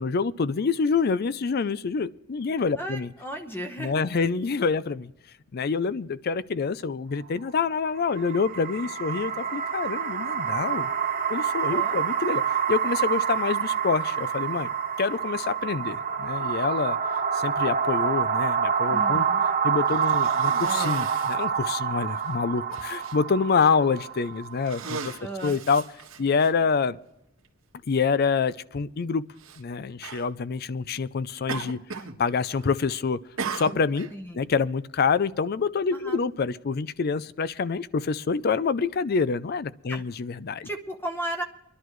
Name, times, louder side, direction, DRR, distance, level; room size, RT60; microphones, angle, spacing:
voice 1, 0.0-3.1 3.8-5.1 5.5-10.9 11.3-14.7 15.0-17.0 17.3-19.3 19.6-25.1 25.4-25.8 26.2-27.0 27.9-29.2 29.6-31.8 32.2-33.2 33.5-34.1 34.3-40.7, left 5 dB, 50° left, 17 dB, 0.4 m, -26 dB
voice 2, 2.8-4.0 11.7-12.0 18.9-19.4 20.1-20.4 25.2-25.6 34.1-34.5 35.9-36.2 39.9-40.0 40.6-41.4, right 1 dB, 10° left, 5 dB, 1.0 m, -35 dB
sound 1, 8.0-25.1, right 7 dB, 45° right, 0.8 m, -27 dB
Cough, 19.8-21.5 22.2-22.3 22.7-23.2 23.9-24.2 24.6-26.5 27.4-27.5 29.4-29.6 30.0-30.3 31.5-32.2 32.4-32.8 33.4-34.1, right 5 dB, 80° right, 1.5 m, -36 dB
25.0 x 11.5 x 3.1 m, 0.84 s
head